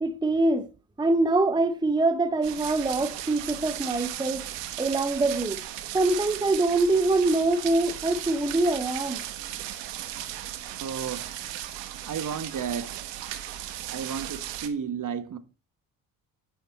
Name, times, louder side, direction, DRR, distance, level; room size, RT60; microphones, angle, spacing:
voice 1, 0.0-0.7 1.0-4.4 4.8-5.6 5.9-9.2, right 2 dB, 10° right, 0.8 m, -24 dB
sound 1, 2.4-14.7, right 12 dB, 70° right, 1.3 m, -36 dB
voice 2, 10.8-11.3 12.1-12.9 13.9-15.4, right 7 dB, 45° right, 1.3 m, -32 dB
8.4 x 5.8 x 4.2 m
hypercardioid pair, 55°, 44 cm